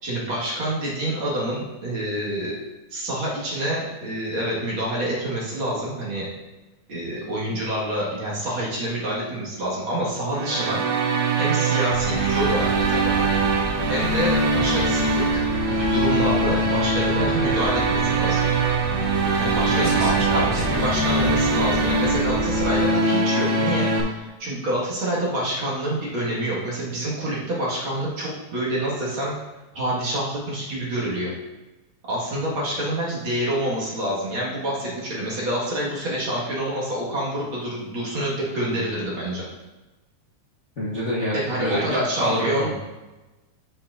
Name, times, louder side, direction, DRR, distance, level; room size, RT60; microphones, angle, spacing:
voice 1, 0.0-2.5 2.9-6.3 6.9-10.8 11.4-13.3 13.9-18.4 19.4-29.3 29.7-31.3 32.1-39.4 41.3-42.7, right 1 dB, 45° right, -6 dB, 2.1 m, -27 dB
sound 1, 10.3-24.0, right 3 dB, 90° right, 1.0 m, -22 dB
sound 2, 11.9-22.9, left 1 dB, 65° left, 1.4 m, -31 dB
voice 2, 19.7-20.8 22.3-22.4 40.8-42.7, equal, 45° left, -8 dB, 0.9 m, -27 dB
7.6 x 7.2 x 2.5 m, 1.1 s
omnidirectional pair, 3.6 m